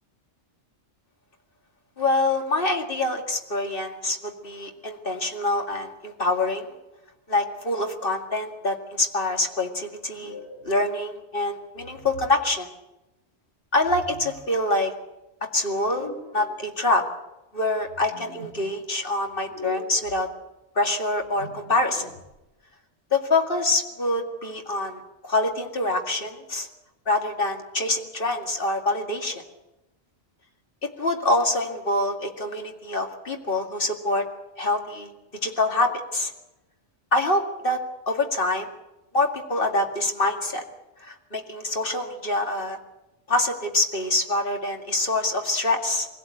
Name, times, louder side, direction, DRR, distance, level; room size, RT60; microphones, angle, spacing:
voice 1, 2.0-6.7 7.3-10.4 10.6-12.7 13.7-14.9 15.4-17.0 17.5-20.3 20.8-22.1 23.1-26.7 27.1-29.4 30.8-34.3 34.6-35.1 35.4-36.3 37.1-38.7 39.1-40.6 41.0-42.8 43.3-46.1, left 2 dB, 50° left, 3 dB, 2.4 m, -25 dB
sound 1, 10.1-10.7 11.8-12.4 13.8-14.4 15.8-16.5 17.8-18.6 19.3-20.2 21.1-22.4, left 4 dB, 70° left, 6.4 m, -41 dB
23.0 x 17.0 x 8.5 m, 0.98 s
omnidirectional pair, 1.2 m